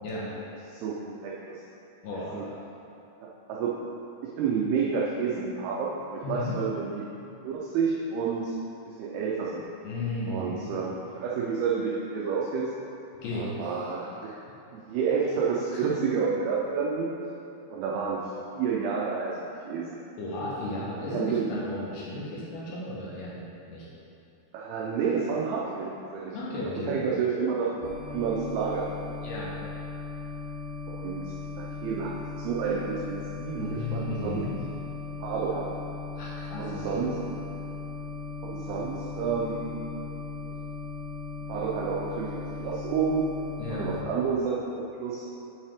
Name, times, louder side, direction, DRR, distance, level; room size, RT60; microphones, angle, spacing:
voice 1, 0.7-1.6 2.1-2.5 3.2-3.8 4.2-7.1 7.4-8.5 8.9-9.6 10.3-10.9 11.2-12.7 13.3-14.3 14.7-17.1 17.7-18.3 18.5-19.4 19.7-19.9 21.1-21.7 24.5-26.4 26.8-28.9 30.9-34.4 35.2-35.7 36.6-37.2 38.4-39.8 41.5-43.3 43.7-45.3, right 5 dB, 90° right, -4 dB, 2.2 m, -30 dB
voice 2, 2.0-2.5 6.2-6.6 9.8-10.7 13.2-13.7 14.2-14.4 15.7-16.0 20.2-23.4 23.7-23.9 26.3-27.0 29.2-29.5 33.6-34.5 36.2-37.1 43.6-43.9, left 2 dB, 75° left, -6 dB, 2.6 m, -34 dB
sound 1, 27.8-44.0, left 4 dB, 70° right, 2.4 m, -38 dB
7.5 x 5.5 x 3.5 m, 2.9 s
omnidirectional pair, 5.2 m